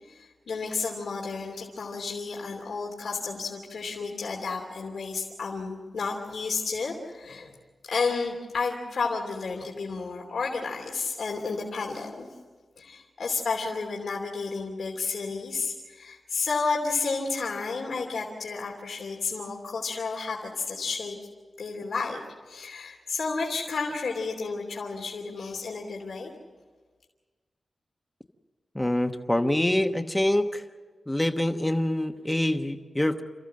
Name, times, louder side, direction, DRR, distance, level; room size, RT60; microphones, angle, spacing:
voice 1, 0.0-7.6 7.8-12.3 12.8-21.2 21.6-22.2 22.4-26.3, left 4 dB, 80° left, -1 dB, 2.9 m, -31 dB
voice 2, 28.7-30.6 31.1-33.2, left 1 dB, 10° left, 7 dB, 1.1 m, -25 dB
29.0 x 14.5 x 7.6 m, 1.4 s
wide cardioid pair, 155°, 0 cm